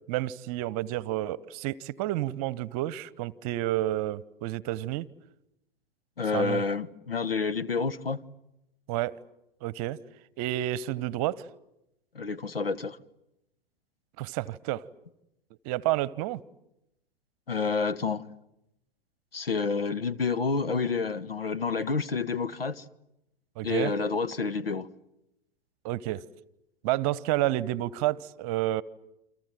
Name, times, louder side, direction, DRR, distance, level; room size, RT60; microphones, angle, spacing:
voice 1, 0.1-5.1 6.3-6.6 8.9-9.2 9.6-10.0 10.4-11.4 14.2-14.8 15.6-16.4 23.6-23.9 25.8-26.2 26.8-28.8, right 15 dB, 40° right, 1.0 m, -30 dB
voice 2, 6.2-8.2 12.1-13.0 17.5-18.2 19.3-22.8 23.6-24.9, left 4 dB, 80° left, 1.4 m, -29 dB
29.0 x 26.5 x 7.7 m
figure-of-eight pair, 100°, 29 cm